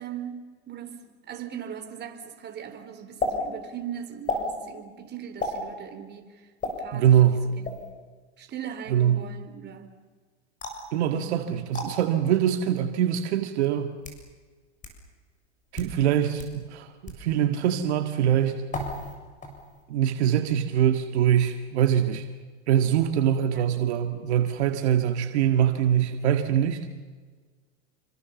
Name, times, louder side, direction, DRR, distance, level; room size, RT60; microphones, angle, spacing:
voice 1, 0.0-7.2 7.5-7.9 8.4-9.9 11.1-11.6 23.5-23.7, right 9 dB, 30° right, 4.0 m, -40 dB
sound 1, 3.2-3.3 4.2-4.5 5.4-5.6 6.6-6.8 7.6-7.9 10.6-10.9 11.7-11.9 12.8-12.9 13.8-14.2 14.8-14.9 15.6-15.9 16.4-16.5 17.1-17.2 18.7-19.1 19.4-19.8, left 2 dB, 20° left, 7.2 m, -32 dB
voice 2, 6.9-7.4 8.9-9.2 10.9-13.9 15.7-18.6 19.9-22.2 22.7-26.8, right 10 dB, 70° right, 2.0 m, -23 dB
28.0 x 25.5 x 7.2 m
hypercardioid pair, 110°, 35 cm